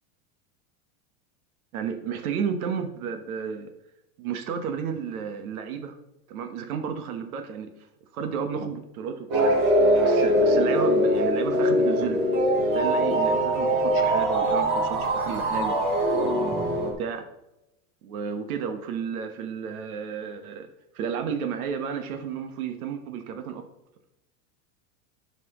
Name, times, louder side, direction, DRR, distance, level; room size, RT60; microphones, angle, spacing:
voice 1, 1.7-3.7 4.2-6.0 6.3-7.7 8.1-9.6 10.0-12.2 12.6-15.8 16.5-17.2 18.0-20.7 20.9-23.6, right 6 dB, 85° right, 7 dB, 1.2 m, -32 dB
sound 1, 9.3-16.9, right 1 dB, 15° right, 0.3 m, -22 dB
11.0 x 5.9 x 3.0 m, 0.90 s
supercardioid pair, 180°, 42 cm